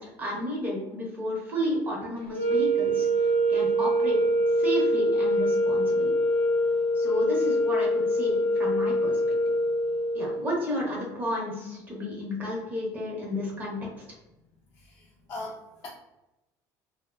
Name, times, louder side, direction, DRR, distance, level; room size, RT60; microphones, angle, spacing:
voice 1, 0.0-3.1 3.5-4.2 4.6-6.1 6.9-9.4 10.1-14.0, left 1 dB, 20° right, -3 dB, 0.8 m, -32 dB
sound 1, 2.3-10.5, equal, 80° right, 0.8 m, -24 dB
voice 2, 14.8-15.9, left 2 dB, 45° left, -6 dB, 0.6 m, -40 dB
3.1 x 2.1 x 2.3 m, 0.95 s
cardioid pair, 160°, 8 cm